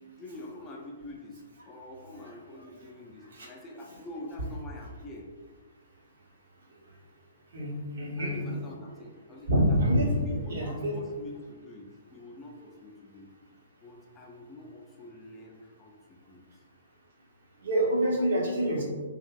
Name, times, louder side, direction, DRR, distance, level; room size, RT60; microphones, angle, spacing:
voice 1, 0.0-1.4 1.7-5.3 8.2-13.3 13.8-16.4, left 1 dB, 20° left, -1 dB, 0.3 m, -46 dB
voice 2, 7.5-8.5 9.5-10.9 17.6-18.8, equal, 60° right, -4 dB, 0.7 m, -27 dB
2.9 x 2.5 x 2.3 m, 1.5 s
figure-of-eight pair, 120°, 0 cm